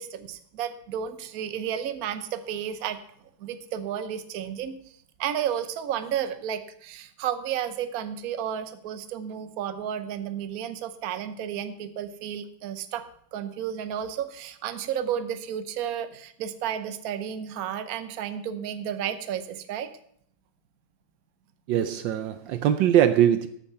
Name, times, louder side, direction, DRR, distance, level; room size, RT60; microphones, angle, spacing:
voice 1, 0.0-3.0 3.4-4.7 5.2-13.1 13.3-19.9, right 9 dB, 55° right, 1.1 m, -32 dB
voice 2, 21.7-23.5, right 10 dB, 75° right, 1.3 m, -21 dB
14.0 x 7.0 x 5.6 m
omnidirectional pair, 2.1 m